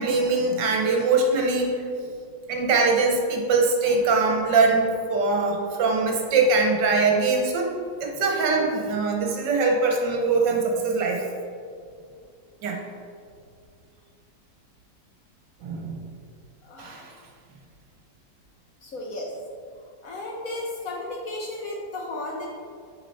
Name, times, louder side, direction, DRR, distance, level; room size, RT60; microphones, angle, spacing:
voice 1, 0.0-2.1 2.5-7.7 8.0-11.2 12.6-12.8 15.6-16.0 16.8-17.1, right 3 dB, 70° right, 1 dB, 1.5 m, -22 dB
voice 2, 16.6-17.0 18.8-19.3 20.0-22.5, left 2 dB, 60° left, -1 dB, 1.0 m, -34 dB
6.7 x 5.1 x 4.1 m, 2.3 s
omnidirectional pair, 2.1 m